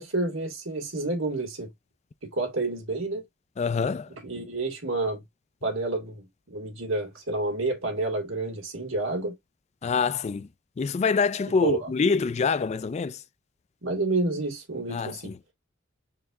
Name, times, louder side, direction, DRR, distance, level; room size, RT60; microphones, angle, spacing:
voice 1, 0.0-1.7 2.2-3.2 4.2-5.2 5.6-9.3 11.6-11.9 13.8-15.3, right 2 dB, 85° right, 2.2 m, -29 dB
voice 2, 3.6-4.1 9.8-10.5 10.8-13.2 14.9-15.4, left 5 dB, 35° left, 0.3 m, -25 dB
4.6 x 3.2 x 3.6 m
head